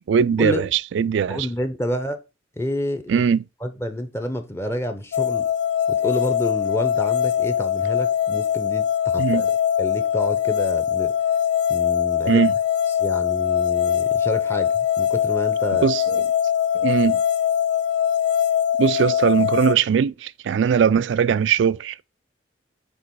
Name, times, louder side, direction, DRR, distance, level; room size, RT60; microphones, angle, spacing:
voice 1, 0.1-1.5 3.1-3.4 9.2-9.5 12.3-12.5 15.8-16.2 16.7-17.2 18.8-22.0, right 7 dB, 85° right, 0.3 m, -20 dB
voice 2, 1.3-2.2 2.6-3.3 3.6-5.5 5.9-9.5 9.8-11.2 11.7-12.5 13.0-15.9 17.0-17.1, left 1 dB, 15° left, 0.7 m, -29 dB
sound 1, 5.1-19.7, left 9 dB, 70° left, 0.5 m, -22 dB
7.9 x 3.0 x 4.5 m
head